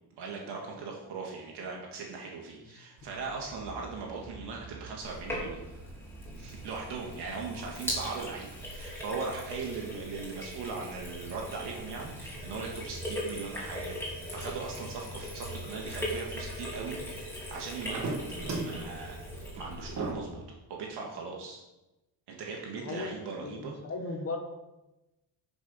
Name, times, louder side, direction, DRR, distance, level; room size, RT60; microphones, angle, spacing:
voice 1, 0.2-5.6 6.4-14.0 14.3-18.2 18.6-19.2 19.5-20.4 20.7-21.6 22.3-23.8, right 4 dB, 60° right, 0 dB, 1.8 m, -39 dB
sound 1, 3.0-20.4, right 2 dB, 35° right, 1.5 m, -43 dB
Sink (filling or washing), 5.0-20.1, equal, 5° left, 3.0 m, -40 dB
voice 2, 22.7-24.4, left 3 dB, 30° left, 3 dB, 1.5 m, -37 dB
10.0 x 6.5 x 5.6 m, 1.0 s
cardioid pair, 175°, 45 cm